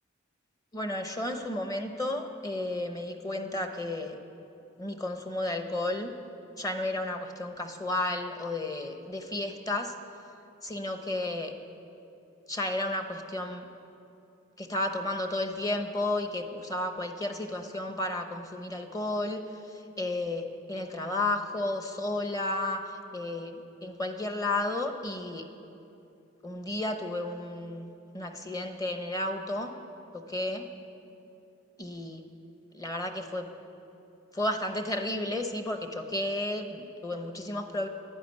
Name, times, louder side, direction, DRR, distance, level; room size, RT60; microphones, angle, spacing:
voice 1, 0.7-4.2 4.8-6.1 6.6-9.9 10.6-11.5 12.5-13.7 14.6-25.5 26.4-29.8 30.1-30.7 31.8-32.2 32.7-33.5 34.3-37.9, left 2 dB, 20° left, 6 dB, 0.9 m, -32 dB
11.5 x 11.0 x 9.5 m, 2.8 s
head